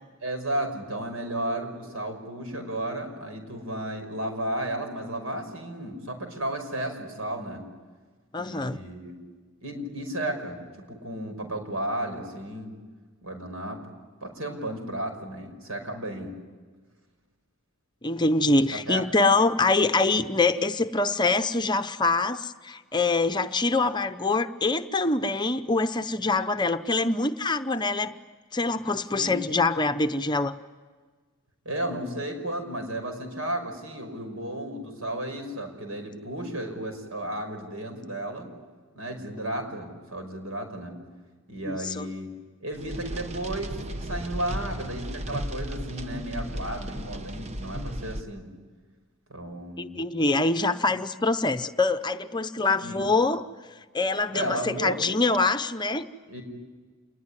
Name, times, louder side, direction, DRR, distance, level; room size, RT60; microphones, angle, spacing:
voice 1, 0.2-7.6 8.4-9.1 9.6-12.7 13.2-13.8 14.2-16.3 18.7-19.0 20.1-20.3 29.1-29.4 31.7-38.5 38.9-40.9 41.5-42.3 42.6-48.5 49.3-50.0 52.8-53.0 54.3-55.0 56.3-56.4, right 1 dB, 75° right, 5 dB, 5.7 m, -33 dB
voice 2, 8.3-8.8 18.0-28.1 28.5-30.5 41.6-42.1 49.8-53.4 53.9-56.1, left 3 dB, 20° left, 9 dB, 0.7 m, -24 dB
sound 1, 42.7-48.2, right 1 dB, 30° right, 0.9 m, -35 dB
28.0 x 21.0 x 9.9 m, 1.4 s
head